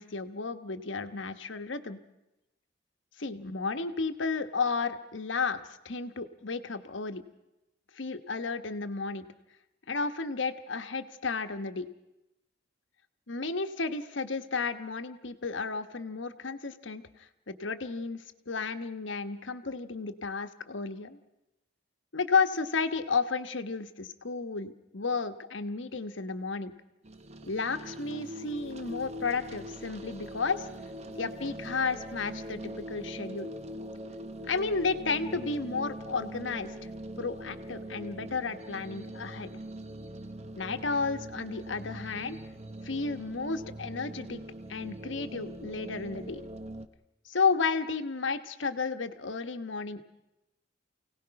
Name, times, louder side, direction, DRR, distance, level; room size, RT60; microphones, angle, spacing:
voice 1, 0.0-2.0 3.2-5.6 5.8-7.2 7.9-9.3 9.9-11.9 13.3-21.2 22.1-26.7 27.4-30.7 31.2-33.5 34.5-36.9 37.2-39.5 40.5-42.4 42.8-44.4 44.7-46.4 47.2-50.0, left 4 dB, 75° left, 9 dB, 1.2 m, -32 dB
sound 1, 27.0-46.9, right 1 dB, 35° right, 1.0 m, -42 dB
29.0 x 17.5 x 5.8 m, 0.94 s
head